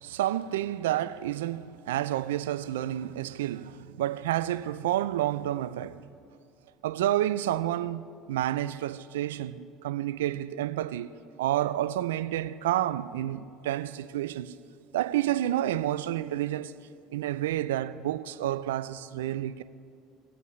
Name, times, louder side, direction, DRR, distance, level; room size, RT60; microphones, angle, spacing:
voice 1, 0.0-6.0 6.8-8.0 8.3-11.1 11.4-14.5 14.9-16.7 17.1-19.6, right 13 dB, 85° right, 0.3 m, -29 dB
20.5 x 8.2 x 3.2 m
hypercardioid pair, 75°, 0 cm